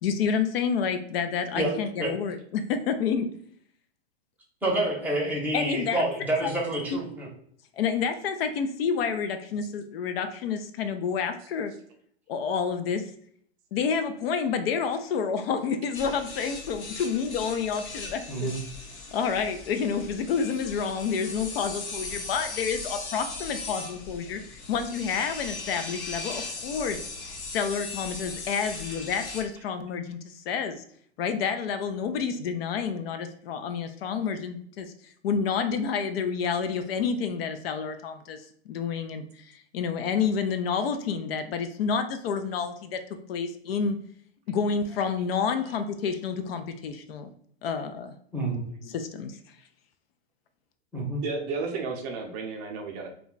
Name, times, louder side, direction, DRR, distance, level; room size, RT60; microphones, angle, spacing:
voice 1, 0.0-3.3 5.5-6.0 6.4-6.5 6.9-7.0 7.8-11.7 12.3-13.1 13.7-18.6 19.1-30.8 31.2-34.9 35.2-44.0 44.5-47.3 47.6-48.1 48.8-49.4, left 6 dB, 60° left, 8 dB, 0.4 m, -29 dB
voice 2, 4.6-7.3 18.3-18.6 48.3-48.6 50.9-51.2, right 1 dB, 5° right, -3 dB, 0.7 m, -28 dB
sound 1, 15.9-29.4, left 3 dB, 80° left, 0.9 m, -38 dB
voice 3, 51.2-53.1, right 4 dB, 35° right, 2 dB, 0.5 m, -32 dB
2.3 x 2.1 x 3.7 m, 0.63 s
hypercardioid pair, 130°, 33 cm